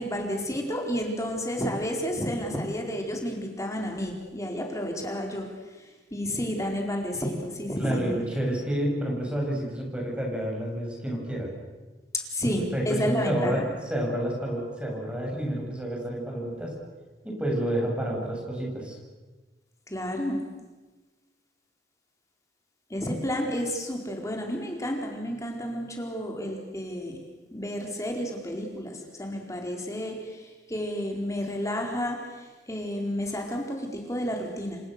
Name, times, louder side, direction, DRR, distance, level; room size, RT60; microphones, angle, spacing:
voice 1, 0.0-5.5 5.8-8.2 12.1-13.7 19.9-20.4 22.9-27.2 27.5-34.8, equal, 20° left, 2 dB, 4.4 m, -31 dB
voice 2, 7.8-11.5 12.7-13.6 13.9-16.8 17.2-19.0, right 1 dB, 5° right, -2 dB, 7.8 m, -29 dB
28.5 x 25.5 x 6.9 m, 1.2 s
head